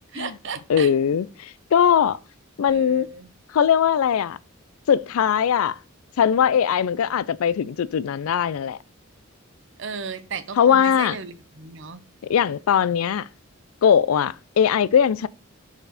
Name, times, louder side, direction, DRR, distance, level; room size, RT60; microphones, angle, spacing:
voice 1, 0.1-0.9 2.7-3.3 9.8-12.0, right 5 dB, 60° right, 0.7 m, -35 dB
voice 2, 0.7-2.2 2.6-3.1 3.5-4.4 4.9-5.8 6.2-8.8 10.6-11.2 12.3-13.3 13.8-15.3, left 8 dB, 90° left, 0.4 m, -20 dB
5.1 x 4.2 x 4.9 m
head